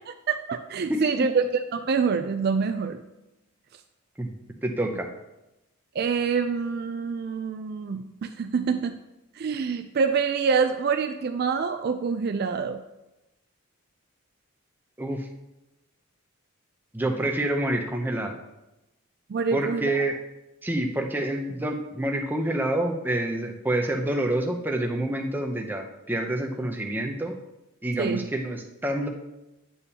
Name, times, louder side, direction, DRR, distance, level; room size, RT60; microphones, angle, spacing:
voice 1, 0.1-3.0 6.0-9.0 9.4-12.8 19.3-19.9 28.0-28.3, right 5 dB, 45° right, 7 dB, 0.3 m, -26 dB
voice 2, 0.9-1.3 4.2-4.3 4.6-5.1 15.0-15.3 16.9-18.3 19.5-20.2 20.6-27.4 27.8-29.1, right 1 dB, 10° right, 2 dB, 0.6 m, -27 dB
9.6 x 6.9 x 2.8 m, 0.98 s
head